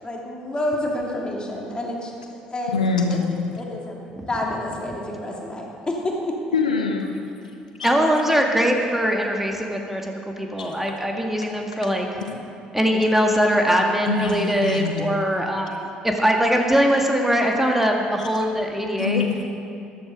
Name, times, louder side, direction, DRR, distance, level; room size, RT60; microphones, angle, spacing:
voice 1, 0.0-2.8 3.1-3.2 3.6-6.4, left 1 dB, 20° left, -1 dB, 2.8 m, -29 dB
voice 2, 2.7-3.2 6.5-7.1 7.8-7.9 10.6-10.8 11.4-11.5 12.2-12.3 14.1-15.1 18.2-18.4 19.0-19.4, left 5 dB, 85° left, 4 dB, 1.0 m, -25 dB
voice 3, 7.8-12.1 12.7-19.2, equal, 5° right, 1 dB, 2.0 m, -21 dB
13.5 x 11.5 x 5.3 m, 2.6 s
figure-of-eight pair, 55°, 4 cm